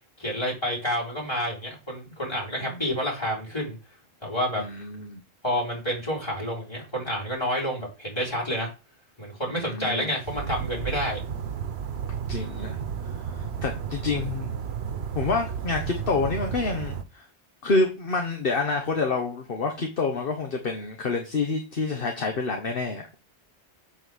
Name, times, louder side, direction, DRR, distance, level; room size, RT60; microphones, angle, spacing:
voice 1, 0.2-3.8 4.2-4.6 5.4-8.7 9.2-11.2 12.3-12.8, equal, 20° left, -3 dB, 4.5 m, -29 dB
voice 2, 4.6-5.2 9.5-10.1 12.3-12.8 13.0-14.5 15.1-17.3 17.6-23.1, left 3 dB, 55° left, 3 dB, 1.3 m, -28 dB
sound 1, 10.3-17.0, right 7 dB, 65° right, 1.1 m, -32 dB
7.4 x 4.4 x 6.3 m, 0.30 s
omnidirectional pair, 1.2 m